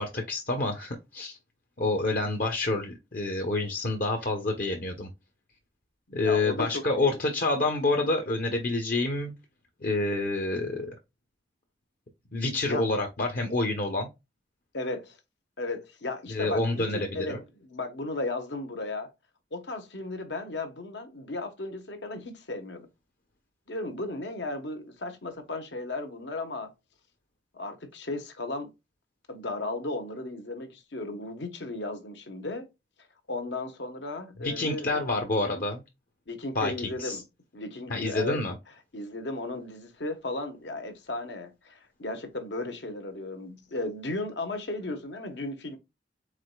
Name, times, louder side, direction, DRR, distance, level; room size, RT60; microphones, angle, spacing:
voice 1, 0.0-1.4 1.8-5.1 6.1-9.3 9.8-10.9 12.3-14.1 16.3-17.4 34.4-35.8 36.5-37.2 37.9-38.5, left 2 dB, 50° left, 0.8 m, -28 dB
voice 2, 6.1-7.1 12.7-12.8 14.7-15.2 15.6-19.1 19.5-22.9 23.7-26.7 27.5-28.7 29.3-32.7 33.3-35.0 36.3-37.2 37.5-38.5 38.9-45.8, left 2 dB, 80° left, 1.1 m, -35 dB
4.8 x 3.9 x 2.2 m
head